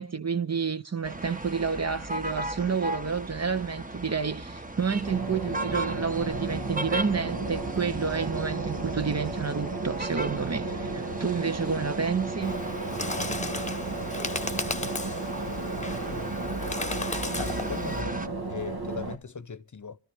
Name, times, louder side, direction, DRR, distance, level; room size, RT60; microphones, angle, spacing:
voice 1, 0.0-12.6, right 5 dB, 40° right, 0.7 m, -29 dB
sound 1, 1.0-18.3, right 2 dB, 20° right, 1.1 m, -37 dB
sound 2, 5.0-19.2, right 3 dB, 75° right, 1.7 m, -34 dB
Bird, 12.4-18.0, left 2 dB, 20° left, 1.0 m, -35 dB
voice 2, 17.4-18.2 18.5-20.0, left 5 dB, 50° left, 0.7 m, -38 dB
27.0 x 13.5 x 3.4 m
wide cardioid pair, 70°, 39 cm